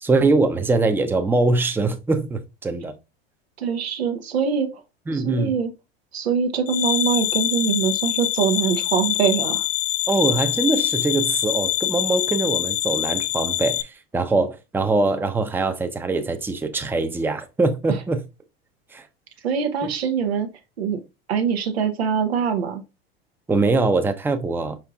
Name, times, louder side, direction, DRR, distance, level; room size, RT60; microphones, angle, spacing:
voice 1, 0.0-2.9 5.1-5.6 10.1-18.2 18.9-19.1 23.5-24.8, right 3 dB, 5° right, 0.6 m, -22 dB
voice 2, 3.6-4.7 5.1-5.7 6.1-9.7 17.9-18.0 19.4-20.5 20.8-21.0 21.3-22.8, right 7 dB, 85° right, 0.8 m, -23 dB
sound 1, 6.7-13.8, left 14 dB, 65° left, 0.6 m, -24 dB
4.9 x 4.4 x 2.3 m
hypercardioid pair, 90°, 31 cm